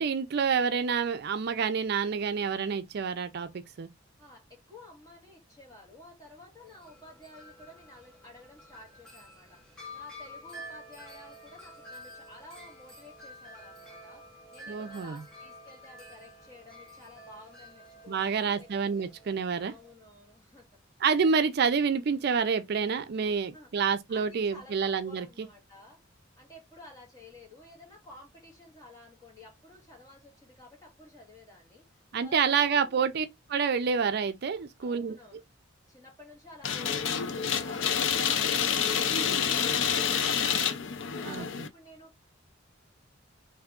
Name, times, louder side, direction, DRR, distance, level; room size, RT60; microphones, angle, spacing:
voice 1, 0.0-3.5 3.8-3.9 14.7-15.2 18.1-19.7 21.0-25.3 32.1-35.2 41.3-41.5, right 6 dB, 55° right, 0.4 m, -28 dB
voice 2, 4.2-9.6 9.9-14.2 14.5-18.7 18.9-19.1 19.6-20.7 23.2-23.7 24.1-26.0 26.4-31.8 32.2-33.1 34.8-35.4 35.9-40.8 41.2-42.1, left 1 dB, 20° left, 1.8 m, -52 dB
Wind chime, 6.6-19.9, equal, 5° left, 1.4 m, -49 dB
sound 1, 36.6-41.7, left 7 dB, 70° left, 0.5 m, -28 dB
3.4 x 2.7 x 3.6 m
head